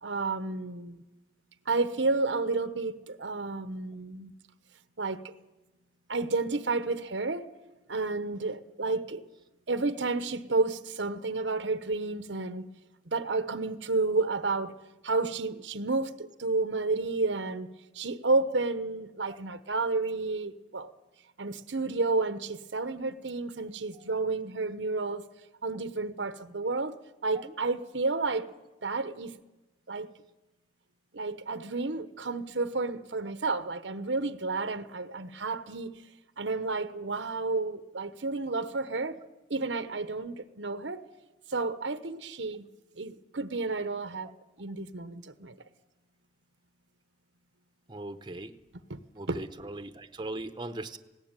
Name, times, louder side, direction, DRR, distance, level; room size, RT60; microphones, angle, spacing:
voice 1, 0.0-1.0 1.7-4.3 5.0-5.3 6.1-7.5 7.9-9.2 9.7-12.7 13.1-14.7 15.0-17.7 17.9-20.9 21.4-25.2 25.6-28.5 28.8-29.4 29.9-30.1 31.1-35.9 36.4-39.2 39.5-41.0 41.5-42.7 43.0-44.3 44.6-45.5 48.9-49.0 49.3-49.4, right 3 dB, 90° right, 1.1 m, -31 dB
voice 2, 47.9-48.5 49.1-51.0, right 2 dB, 25° right, 0.8 m, -39 dB
19.0 x 17.0 x 9.0 m
head